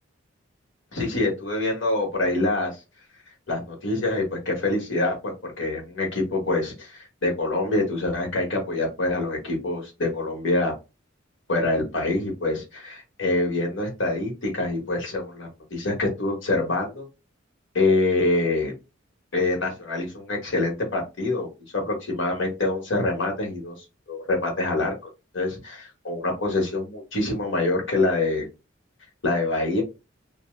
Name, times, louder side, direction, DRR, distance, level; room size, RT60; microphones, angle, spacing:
voice 1, 0.9-2.8 3.5-10.7 11.5-17.1 17.7-18.7 19.3-21.5 21.7-23.7 24.1-24.9 25.3-28.5 29.2-29.8, left 2 dB, 70° left, 1 dB, 1.2 m, -25 dB
2.9 x 2.1 x 3.2 m, 0.27 s
head